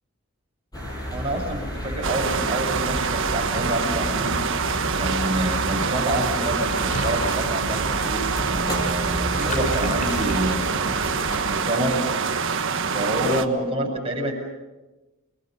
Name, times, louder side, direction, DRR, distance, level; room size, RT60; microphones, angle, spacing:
sound 1, 0.7-11.4, equal, 20° left, 7.2 m, -32 dB
voice 1, 1.1-4.4 5.0-10.8 11.4-12.0 12.9-14.3, right 1 dB, 25° right, -1 dB, 7.4 m, -27 dB
sound 2, 2.0-13.4, right 5 dB, 60° right, 1.5 m, -25 dB
Water / Bathtub (filling or washing), 6.9-10.9, left 1 dB, 40° left, 3.4 m, -37 dB
29.0 x 22.5 x 6.9 m, 1.1 s
head